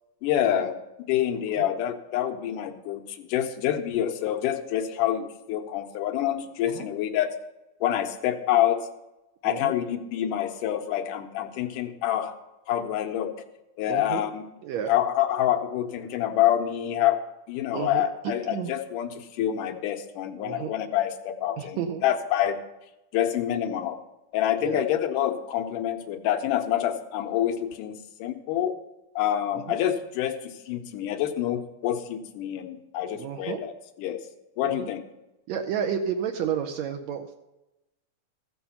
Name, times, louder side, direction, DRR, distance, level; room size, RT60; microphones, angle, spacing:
voice 1, 0.2-0.8 1.1-7.3 7.8-8.9 9.4-12.4 12.7-13.3 13.8-14.5 14.9-17.2 17.5-22.6 23.1-24.0 24.3-28.8 29.2-33.7 34.0-34.2 34.6-35.0, left 11 dB, 85° left, 6 dB, 2.4 m, -27 dB
voice 2, 13.9-14.3 14.6-14.9 17.7-18.7 20.4-20.7 21.6-22.0 24.6-24.8 29.5-29.8 33.1-33.6 34.7-34.9 35.5-37.4, right 8 dB, 75° right, 5 dB, 1.7 m, -31 dB
14.5 x 7.0 x 5.6 m, 0.98 s
omnidirectional pair, 3.7 m